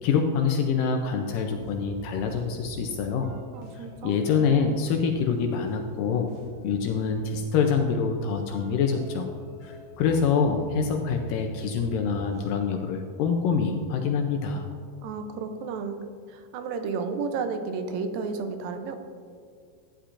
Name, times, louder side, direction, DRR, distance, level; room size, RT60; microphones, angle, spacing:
voice 1, 0.0-3.3 3.7-6.3 6.6-9.3 9.6-14.7, left 5 dB, 80° left, 3 dB, 2.0 m, -25 dB
sound 1, 1.3-12.5, right 2 dB, 55° right, 2.3 m, -46 dB
voice 2, 3.5-4.2 15.0-16.0 16.3-19.0, right 5 dB, 80° right, 7 dB, 2.2 m, -32 dB
13.0 x 9.8 x 2.5 m, 2.2 s
omnidirectional pair, 4.5 m